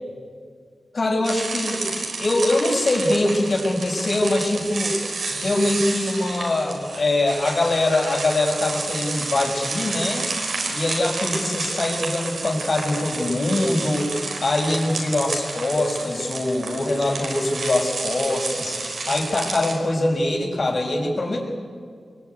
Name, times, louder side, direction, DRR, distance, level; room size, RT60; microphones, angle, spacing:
voice 1, 0.9-5.0 5.3-10.3 10.7-21.5, left 2 dB, 60° left, 1 dB, 6.4 m, -23 dB
sound 1, 1.2-19.8, right 3 dB, 80° right, 4.8 m, -30 dB
23.5 x 22.0 x 9.6 m, 2.1 s
cardioid pair, 45°, 0 cm